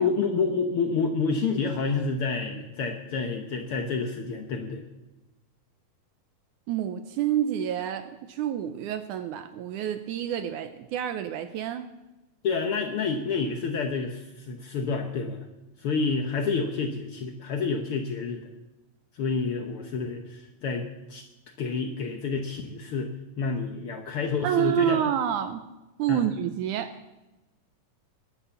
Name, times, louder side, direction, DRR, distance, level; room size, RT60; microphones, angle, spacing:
voice 1, 0.0-4.8 12.4-15.4 15.8-18.5 19.1-21.2 21.6-25.0 26.1-26.2, left 4 dB, 85° left, 4 dB, 1.2 m, -29 dB
voice 2, 6.7-11.8 24.4-25.7 26.0-26.9, right 11 dB, 75° right, 9 dB, 1.9 m, -28 dB
20.0 x 8.5 x 7.0 m, 1.0 s
omnidirectional pair, 4.0 m